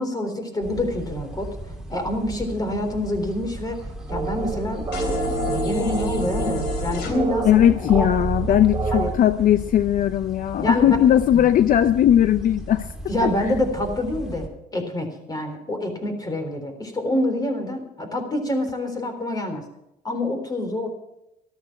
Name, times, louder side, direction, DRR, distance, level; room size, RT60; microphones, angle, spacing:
voice 1, 0.0-1.5 1.9-3.8 4.1-7.6 7.9-8.1 8.4-8.6 8.9-9.1 10.6-11.0 11.3-11.4 13.1-19.6 20.0-20.9, left 1 dB, 20° left, 6 dB, 3.6 m, -26 dB
sound 1, 0.6-14.5, right 1 dB, 5° right, 2.8 m, -37 dB
sound 2, 4.1-9.1, right 4 dB, 20° right, 2.0 m, -28 dB
sound 3, 4.9-7.1, left 3 dB, 80° left, 3.1 m, -29 dB
voice 2, 7.5-12.9 13.2-13.3, left 11 dB, 55° left, 13 dB, 0.6 m, -18 dB
13.0 x 13.0 x 5.9 m, 0.86 s
cardioid pair, 110°, 17 cm